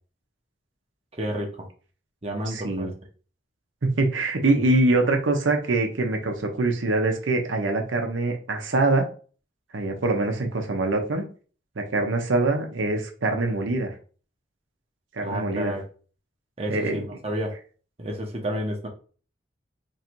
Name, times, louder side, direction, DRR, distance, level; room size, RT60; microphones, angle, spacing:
voice 1, 1.1-1.7 2.2-2.9 15.2-15.8 16.6-17.5 18.0-18.9, right 1 dB, 30° right, 0.7 m, -30 dB
voice 2, 2.5-2.9 3.8-9.1 9.7-11.2 11.8-13.9 15.1-15.7 16.7-17.2, right 2 dB, 85° right, 0.7 m, -24 dB
3.1 x 2.6 x 4.4 m
head